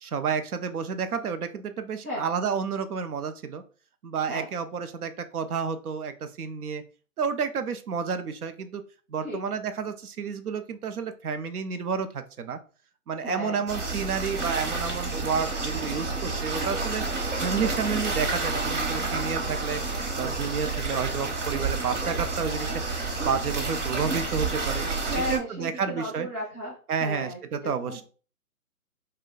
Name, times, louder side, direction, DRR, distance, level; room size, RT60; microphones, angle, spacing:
voice 1, 0.0-3.6 4.0-6.8 7.2-8.8 9.1-12.6 13.1-19.8 20.1-24.8 25.1-26.3 26.9-28.0, right 6 dB, 85° right, 9 dB, 0.6 m, -30 dB
voice 2, 13.2-13.6 21.5-21.7 25.1-26.7 27.0-28.0, left 1 dB, 15° right, -9 dB, 0.5 m, -34 dB
sound 1, 13.7-25.4, right 3 dB, 55° right, 1.0 m, -29 dB
2.5 x 2.2 x 3.7 m, 0.39 s
hypercardioid pair, 155°, 44 cm